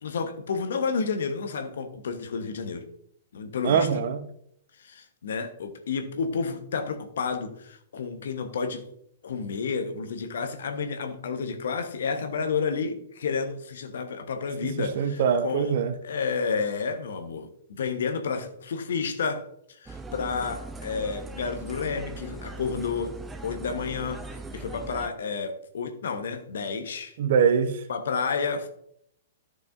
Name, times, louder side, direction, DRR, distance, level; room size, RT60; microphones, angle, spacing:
voice 1, 0.0-2.9 3.3-3.9 4.8-8.8 9.2-15.8 16.0-19.5 19.8-23.2 23.4-27.1 27.9-28.7, left 5 dB, 60° left, 1.2 m, -30 dB
voice 2, 3.6-4.3 14.6-16.0 27.2-27.8, right 7 dB, 50° right, 1.0 m, -23 dB
sound 1, 19.9-25.1, right 2 dB, 10° right, 0.7 m, -40 dB
14.0 x 6.2 x 2.6 m
figure-of-eight pair, 110°, 0 cm